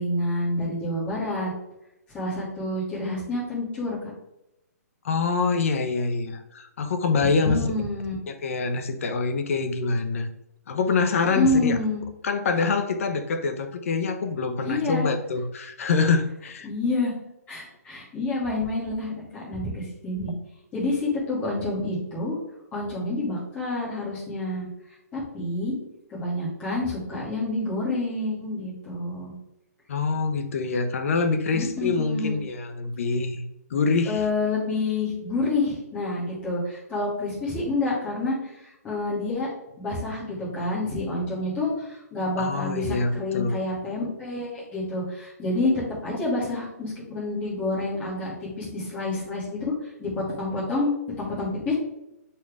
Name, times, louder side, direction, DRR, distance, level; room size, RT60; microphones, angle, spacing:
voice 1, 0.0-1.5 2.1-4.0 7.2-8.1 11.3-12.0 14.6-15.1 16.6-17.1 17.5-20.3 20.7-22.4 22.7-24.7 25.1-25.7 26.1-29.3 31.5-32.4 34.0-39.5 39.8-45.7 46.0-49.6 50.0-51.7, left 2 dB, 15° left, -8 dB, 2.4 m, -28 dB
voice 2, 5.0-7.6 8.3-10.3 10.7-11.8 12.2-16.7 29.9-33.4 33.7-34.2 42.4-43.6, left 4 dB, 55° left, 9 dB, 0.9 m, -25 dB
7.4 x 4.4 x 3.5 m, 0.87 s
hypercardioid pair, 160°, 9 cm